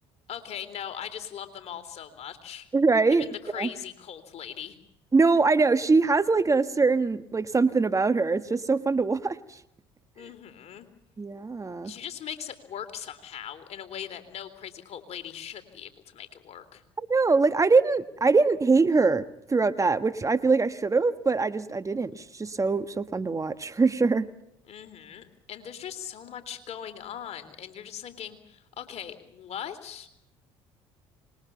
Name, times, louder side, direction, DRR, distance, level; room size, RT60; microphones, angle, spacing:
voice 1, 0.3-2.7 3.1-4.8 10.2-10.9 11.8-16.8 24.7-30.2, left 9 dB, 55° left, 10 dB, 3.5 m, -40 dB
voice 2, 2.7-3.3 3.6-3.7 5.1-9.6 11.2-11.9 17.1-24.3, right 4 dB, 25° right, 11 dB, 1.4 m, -23 dB
26.0 x 21.5 x 7.1 m, 0.76 s
hypercardioid pair, 65°, 13 cm